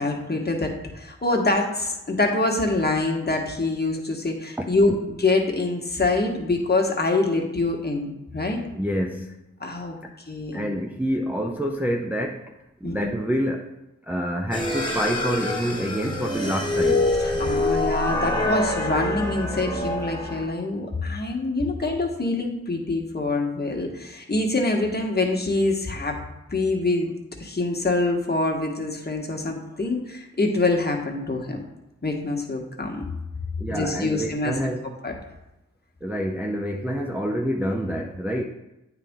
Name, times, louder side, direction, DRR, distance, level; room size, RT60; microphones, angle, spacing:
voice 1, 0.0-8.6 9.6-10.0 10.3-10.7 12.8-13.1 17.4-26.2 26.5-27.1 27.4-31.6 32.0-33.0 33.7-34.5 35.0-35.1, left 2 dB, 30° left, 1 dB, 1.4 m, -25 dB
voice 2, 4.6-5.0 8.7-9.4 10.0-10.1 10.5-12.5 12.8-13.7 14.0-17.1 33.6-34.9 36.0-38.4, equal, 5° right, 1 dB, 0.5 m, -27 dB
sound 1, 14.5-20.4, left 2 dB, 15° left, 1.4 m, -25 dB
8.9 x 4.0 x 3.7 m, 0.95 s
cardioid pair, 45°, 33 cm